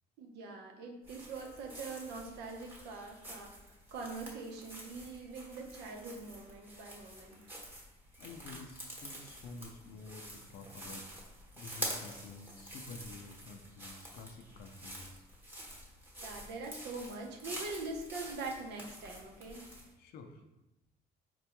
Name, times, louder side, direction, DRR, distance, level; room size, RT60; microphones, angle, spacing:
voice 1, 0.2-7.4 16.2-19.7, right 3 dB, 80° right, 1 dB, 0.7 m, -43 dB
sound 1, 1.0-19.9, right 1 dB, 10° right, 1.0 m, -47 dB
voice 2, 8.2-11.1 11.5-15.2 20.0-20.4, left 4 dB, 65° left, 6 dB, 0.5 m, -50 dB
4.2 x 2.2 x 2.9 m, 0.95 s
cardioid pair, 110°, 17 cm